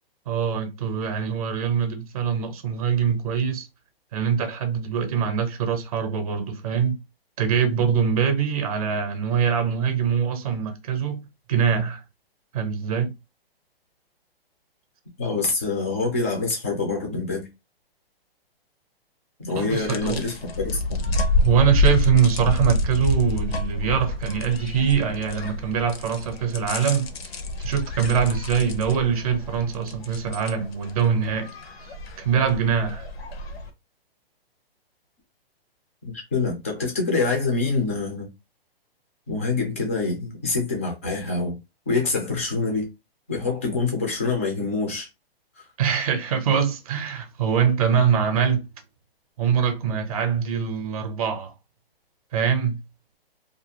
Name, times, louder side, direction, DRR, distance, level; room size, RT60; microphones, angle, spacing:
voice 1, 0.3-3.7 4.1-6.9 7.4-11.2 11.5-12.0 12.5-13.1 19.5-20.2 21.4-27.1 27.6-31.5 32.2-33.1 45.8-48.6 49.4-51.5 52.3-52.8, right 7 dB, 40° right, 0.6 m, -23 dB
voice 2, 15.2-17.5 19.4-21.1 36.0-38.3 39.3-41.6 41.9-42.9 43.3-45.1 45.6-45.7, left 3 dB, 15° left, 0.3 m, -26 dB
sound 1, 19.5-33.7, left 2 dB, 80° left, 0.7 m, -28 dB
2.4 x 2.3 x 2.8 m
hypercardioid pair, 155°, 31 cm